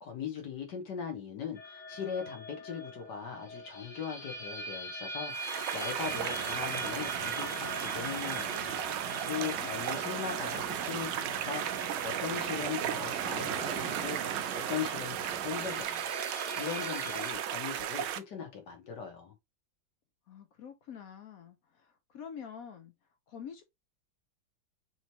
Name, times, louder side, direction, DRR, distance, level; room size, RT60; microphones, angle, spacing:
voice 1, 0.0-8.7 9.0-14.2 14.5-16.1 16.6-19.3, left 7 dB, 60° left, 1.7 m, -39 dB
sound 1, 1.6-17.3, equal, 40° left, 0.8 m, -43 dB
sound 2, 5.3-18.2, right 11 dB, 80° right, 1.4 m, -35 dB
sound 3, 6.0-15.8, right 6 dB, 55° right, 1.2 m, -42 dB
voice 2, 9.3-10.0 20.3-22.9 23.3-23.6, left 7 dB, 75° left, 0.8 m, -47 dB
4.2 x 3.2 x 2.8 m
omnidirectional pair, 2.2 m